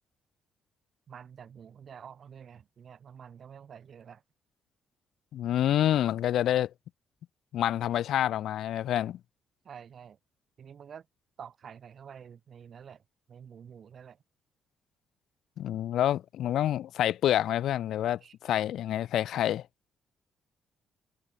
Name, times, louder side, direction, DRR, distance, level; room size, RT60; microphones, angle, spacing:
voice 1, 1.1-4.2 9.6-10.2 10.6-11.1 11.4-13.0 13.3-14.2 18.2-18.4, right 7 dB, 55° right, 4.6 m, -48 dB
voice 2, 5.3-6.7 7.5-9.2 15.6-19.6, left 11 dB, 75° left, 0.6 m, -27 dB
cardioid pair, 90°, 0 cm